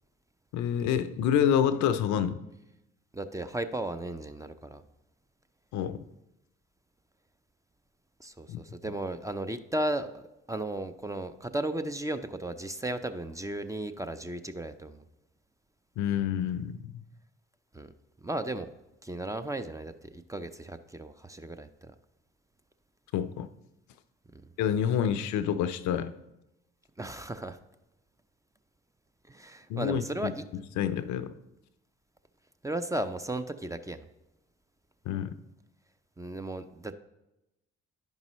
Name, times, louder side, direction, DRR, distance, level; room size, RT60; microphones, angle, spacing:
voice 1, 0.5-2.5 5.7-6.0 8.5-8.6 16.0-16.8 23.1-23.5 24.6-26.1 29.7-30.3 30.8-31.3 35.1-35.3, left 9 dB, 75° left, 12 dB, 0.5 m, -27 dB
voice 2, 3.1-4.8 8.2-10.2 10.5-15.0 17.7-17.9 18.2-18.7 19.0-21.9 27.0-27.6 29.3-30.4 32.6-34.1 36.2-36.9, right 1 dB, 10° right, 9 dB, 0.5 m, -35 dB
11.0 x 5.3 x 3.1 m, 0.94 s
hypercardioid pair, 50°, 29 cm